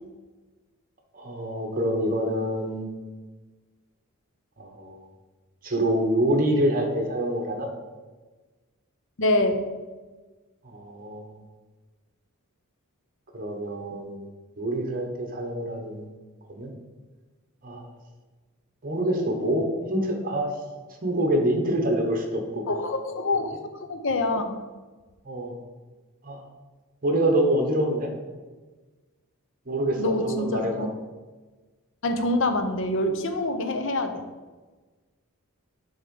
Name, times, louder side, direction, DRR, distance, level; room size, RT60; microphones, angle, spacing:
voice 1, 1.1-2.9 4.6-5.0 5.6-7.7 10.6-11.4 13.3-14.3 14.6-16.1 16.5-16.7 17.6-17.8 18.8-20.5 21.0-22.6 25.3-25.5 26.2-26.4 27.0-28.1 29.7-30.9, right 1 dB, 40° right, 3 dB, 1.0 m, -26 dB
voice 2, 9.2-9.7 22.7-23.5 23.9-24.6 30.0-30.9 32.0-34.2, left 2 dB, 55° left, 7 dB, 0.7 m, -25 dB
6.7 x 3.6 x 5.4 m, 1.3 s
head